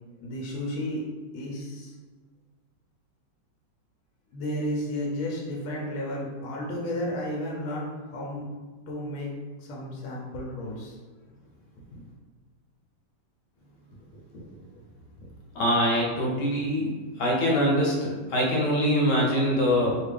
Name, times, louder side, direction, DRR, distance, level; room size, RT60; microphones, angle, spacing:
voice 1, 0.2-1.0 1.3-1.9 4.3-8.4 8.9-9.3 9.7-10.9, left 1 dB, 85° left, -3 dB, 1.4 m, -32 dB
voice 2, 15.5-16.9 17.2-20.0, equal, 65° left, -3 dB, 1.4 m, -23 dB
3.4 x 2.4 x 3.3 m, 1.4 s
omnidirectional pair, 2.2 m